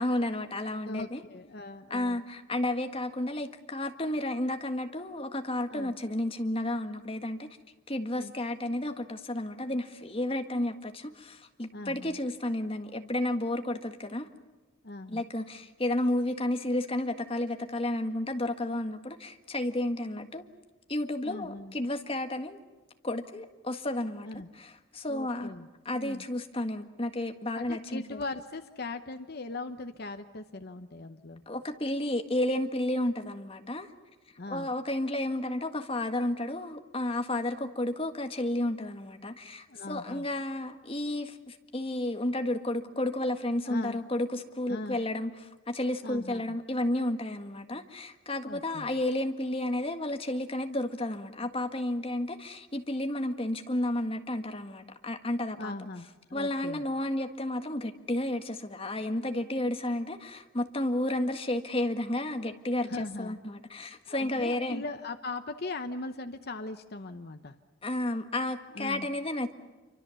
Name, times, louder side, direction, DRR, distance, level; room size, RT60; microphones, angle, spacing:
voice 1, 0.0-1.2 1.9-7.5 7.9-14.3 15.1-20.4 20.9-22.6 23.0-24.3 24.5-25.5 25.8-28.2 31.5-33.9 34.5-55.7 56.3-64.8 67.8-69.5, left 1 dB, 25° left, 6 dB, 1.6 m, -32 dB
voice 2, 0.9-2.2 5.7-5.9 8.2-8.3 11.7-12.2 14.8-15.2 21.2-21.7 24.2-24.5 25.1-25.7 25.9-26.2 27.5-31.4 34.4-34.7 39.7-40.3 43.6-44.0 44.7-45.0 46.0-46.4 48.4-48.9 55.6-56.8 62.9-63.4 64.1-67.6 68.7-69.1, left 2 dB, 50° left, 7 dB, 1.0 m, -39 dB
27.5 x 24.5 x 7.1 m, 1.2 s
head